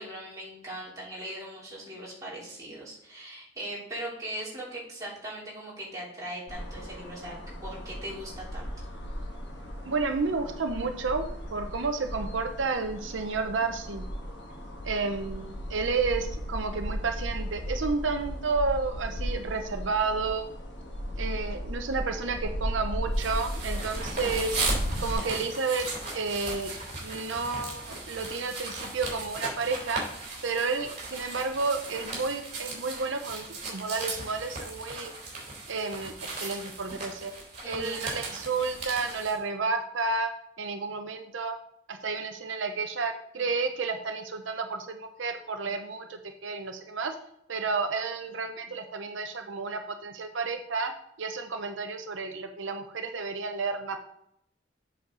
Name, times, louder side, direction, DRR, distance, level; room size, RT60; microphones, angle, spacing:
voice 1, 0.0-8.7 37.6-38.0, right 1 dB, 20° right, -7 dB, 3.6 m, -40 dB
sound 1, 6.5-25.1, equal, 65° left, 1.5 m, -36 dB
voice 2, 9.8-11.3 11.5-14.0 14.8-20.4 21.2-24.6 25.0-25.9 26.1-30.0 30.4-35.1 35.7-37.3 37.7-40.3 40.6-41.6 41.9-47.2 47.5-50.9 51.2-54.0, right 4 dB, 85° right, 5 dB, 0.7 m, -31 dB
sound 2, 23.1-39.4, right 3 dB, 40° right, 3.3 m, -37 dB
7.9 x 6.5 x 4.0 m, 0.76 s
head